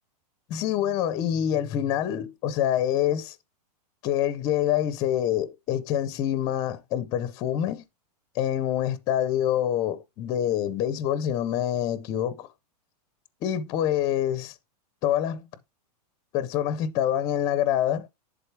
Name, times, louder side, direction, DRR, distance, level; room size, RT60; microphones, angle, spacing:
voice 1, 0.5-3.4 4.0-7.8 8.3-12.5 13.4-14.5 15.0-15.4 16.3-18.1, left 10 dB, 20° left, 0.5 m, -26 dB
10.5 x 3.8 x 4.5 m
supercardioid pair, 175°, 21 cm